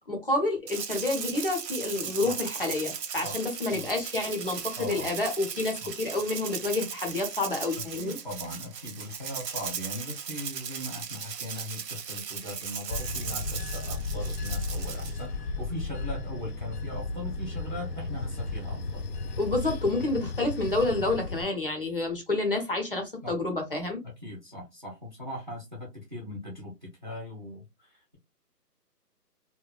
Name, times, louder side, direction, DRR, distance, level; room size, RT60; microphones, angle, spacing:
voice 1, 0.1-8.2 19.4-24.0, left 2 dB, 35° left, 0.6 m, -29 dB
Rattle (instrument), 0.7-15.2, right 7 dB, 85° right, 0.7 m, -37 dB
voice 2, 4.8-5.1 5.8-5.9 8.0-19.0 20.8-21.1 23.2-23.3 24.0-26.7 27.0-27.6, left 1 dB, 30° right, 0.7 m, -39 dB
Bell / Train, 12.9-21.4, left 3 dB, 80° left, 0.7 m, -34 dB
2.9 x 2.2 x 2.2 m
hypercardioid pair, 170°, 49 cm